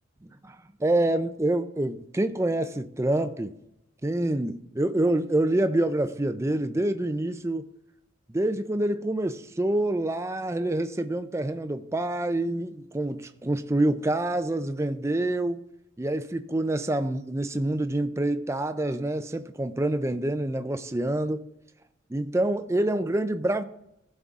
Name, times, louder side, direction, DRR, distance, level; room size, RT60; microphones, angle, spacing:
voice 1, 0.2-0.6 0.8-3.5 4.0-7.6 8.3-15.6 16.0-21.4 22.1-23.6, right 1 dB, 15° right, 0.4 m, -27 dB
15.5 x 5.4 x 3.6 m
head